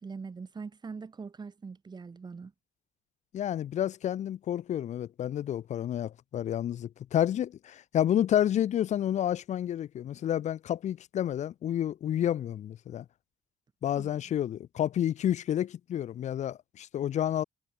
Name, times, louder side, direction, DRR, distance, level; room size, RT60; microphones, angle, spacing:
voice 1, 0.0-2.5 13.9-14.1, right 5 dB, 25° right, 1.8 m, -42 dB
voice 2, 3.3-13.1 13.8-17.4, left 10 dB, 45° left, 0.5 m, -30 dB
cardioid pair, 110°, 17 cm